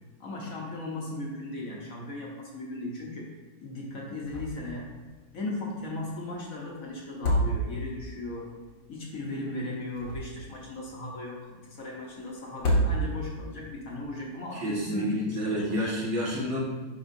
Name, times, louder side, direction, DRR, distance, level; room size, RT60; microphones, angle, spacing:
voice 1, 0.2-3.3 3.6-4.9 5.3-8.5 8.9-15.8, left 2 dB, 50° left, -3 dB, 1.3 m, -37 dB
sound 1, 4.2-4.8 5.0-5.1 7.0-8.0 9.7-10.6 12.5-13.4, right 1 dB, 80° left, 2.0 m, -28 dB
voice 2, 14.5-16.6, equal, 85° right, -5 dB, 2.4 m, -29 dB
10.5 x 4.2 x 2.7 m, 1.4 s
omnidirectional pair, 2.1 m